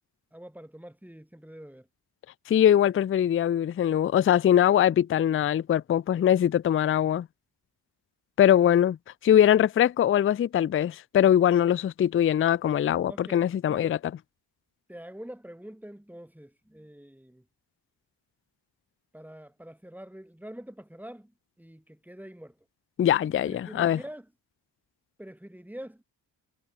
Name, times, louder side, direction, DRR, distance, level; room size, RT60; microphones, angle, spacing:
voice 1, 0.3-1.9 13.1-14.0 14.9-17.5 19.1-22.6 23.5-24.3 25.2-26.0, equal, 5° right, 4.0 m, -45 dB
voice 2, 2.5-7.3 8.4-9.0 9.2-14.0 23.0-24.0, left 10 dB, 30° left, 0.4 m, -22 dB
cardioid pair, 105°, 43 cm